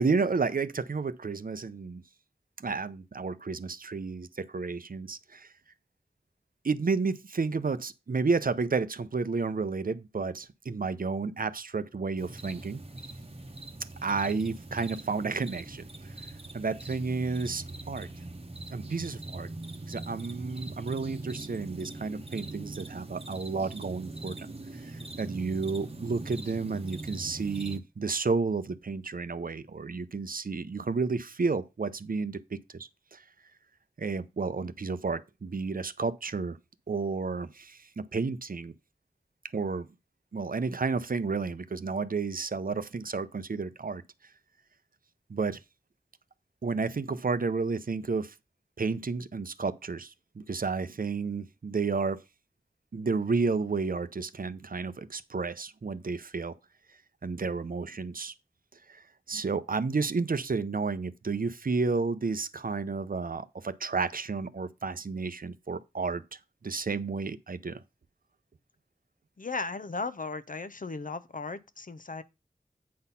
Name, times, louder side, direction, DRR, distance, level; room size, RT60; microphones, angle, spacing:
voice 1, 0.0-2.0 2.6-5.5 6.6-12.8 14.0-16.1 16.5-18.1 18.7-19.5 19.9-24.5 24.8-33.2 34.0-36.6 36.9-38.7 39.5-39.9 40.3-44.0 45.3-45.6 46.6-48.3 48.8-52.2 52.9-56.5 57.2-58.3 58.9-66.2 66.6-67.8, right 4 dB, 65° right, 0.5 m, -31 dB
sound 1, 12.2-27.8, right 2 dB, 40° right, 0.9 m, -42 dB
voice 2, 69.4-72.2, left 4 dB, 55° left, 0.6 m, -36 dB
8.5 x 4.1 x 5.5 m
wide cardioid pair, 55°, 16 cm